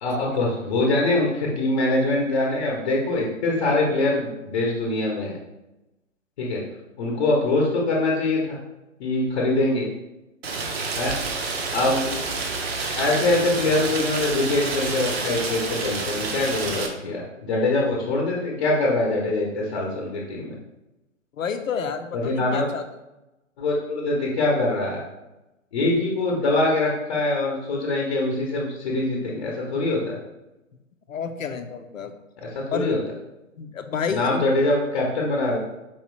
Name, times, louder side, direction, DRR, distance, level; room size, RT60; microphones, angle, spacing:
voice 1, 0.0-5.4 6.4-6.6 7.0-8.6 9.0-9.9 11.0-11.1 11.7-12.0 12.9-20.6 22.1-22.7 23.6-25.0 25.7-30.2 32.4-33.0 34.1-35.6, left 2 dB, 35° left, -2 dB, 0.8 m, -23 dB
Rain, 10.4-16.9, right 4 dB, 50° right, 0.7 m, -29 dB
voice 2, 21.4-22.8 31.1-32.1 32.7-32.9 33.6-34.4, left 6 dB, 75° left, 8 dB, 0.6 m, -30 dB
4.6 x 2.9 x 3.1 m, 0.96 s
figure-of-eight pair, 130°, 40 cm